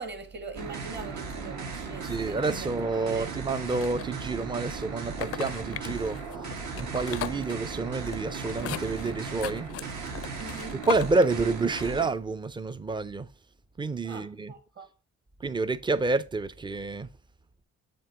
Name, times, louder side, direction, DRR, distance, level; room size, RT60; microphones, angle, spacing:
voice 1, 0.0-2.7 3.0-3.3 10.4-10.8 14.0-14.9, right 3 dB, 35° right, 1.5 m, -42 dB
sound 1, 0.6-12.1, right 5 dB, 65° right, 1.5 m, -37 dB
voice 2, 2.0-6.2 6.8-9.7 10.7-13.3 13.8-14.5 15.4-17.1, right 3 dB, 15° right, 0.4 m, -29 dB
sound 2, 3.5-4.4 5.0-12.1, left 12 dB, 50° left, 0.4 m, -39 dB
7.3 x 2.8 x 5.6 m
cardioid pair, 90°, 30 cm